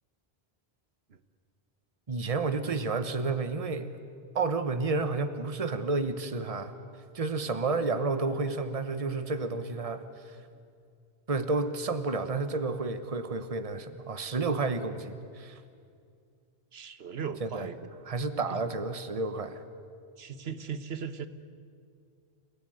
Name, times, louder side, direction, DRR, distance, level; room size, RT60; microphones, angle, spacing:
voice 1, 2.1-3.9 4.3-6.7 7.1-10.4 11.3-15.6 17.4-17.7 18.1-19.6, right 3 dB, 35° right, 10 dB, 1.2 m, -31 dB
voice 2, 16.7-17.9 20.2-21.3, right 6 dB, 75° right, 12 dB, 1.4 m, -38 dB
29.0 x 17.0 x 9.3 m, 2.3 s
omnidirectional pair, 1.0 m